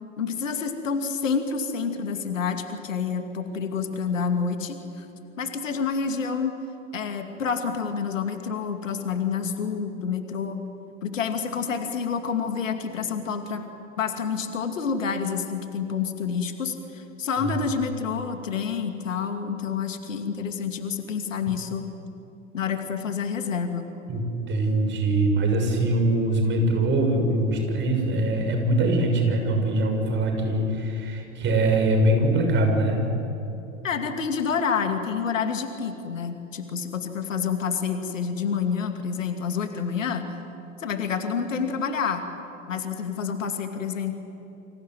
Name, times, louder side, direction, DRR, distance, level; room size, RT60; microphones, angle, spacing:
voice 1, 0.2-5.1 5.4-6.5 6.9-10.6 11.0-13.6 14.0-21.8 22.5-23.9 33.8-40.3 40.8-42.3 42.7-44.1, left 6 dB, 65° left, 6 dB, 2.6 m, -28 dB
voice 2, 24.5-33.0, right 1 dB, 25° right, 3 dB, 6.7 m, -23 dB
29.0 x 26.0 x 7.8 m, 2.9 s
figure-of-eight pair, 90°, 41 cm